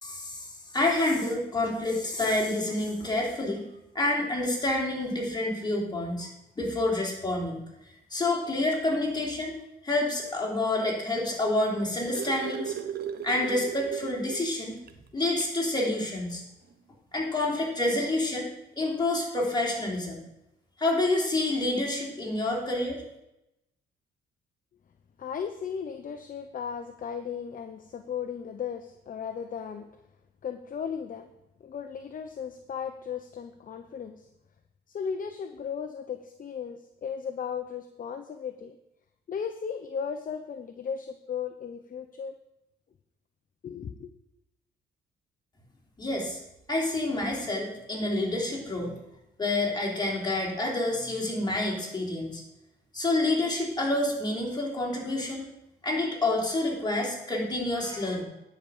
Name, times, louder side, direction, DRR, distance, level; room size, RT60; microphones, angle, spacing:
voice 1, 0.0-3.6 3.9-6.3 6.5-7.6 8.1-9.5 9.8-12.7 13.2-14.8 15.1-16.4 17.1-18.5 18.8-20.2 20.8-23.0 46.0-46.4 46.7-48.9 49.4-52.4 52.9-55.4 55.8-58.2, left 2 dB, 20° left, -2 dB, 3.5 m, -28 dB
sound 1, 11.6-14.5 14.9-15.0 15.4-15.6 16.7-16.8, right 8 dB, 50° right, 0.9 m, -36 dB
voice 2, 25.2-29.9 30.4-31.3 31.6-34.3 34.9-38.8 39.3-42.4 43.6-44.1, left 7 dB, 45° left, 8 dB, 0.7 m, -36 dB
10.0 x 5.0 x 7.2 m, 0.88 s
cardioid pair, 90°, 20 cm